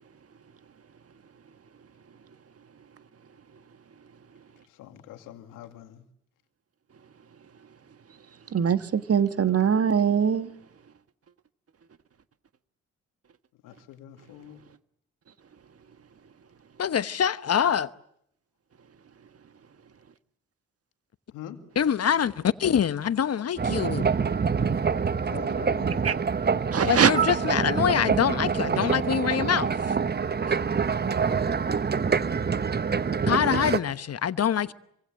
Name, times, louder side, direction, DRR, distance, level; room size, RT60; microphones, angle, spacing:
voice 1, 4.7-6.0 13.6-14.6 21.3-21.6 25.2-26.1 28.4-28.7 32.2-32.5, left 11 dB, 80° left, 2.1 m, -44 dB
voice 2, 8.5-10.5 26.0-26.1 26.7-27.1, right 7 dB, 45° right, 1.5 m, -22 dB
voice 3, 16.8-17.9 21.7-24.1 26.8-29.9 30.5-30.6 33.3-34.7, left 8 dB, 50° left, 1.1 m, -25 dB
sound 1, 23.6-33.8, right 5 dB, 30° right, 1.0 m, -26 dB
26.5 x 24.5 x 7.6 m
hypercardioid pair, 45°, 32 cm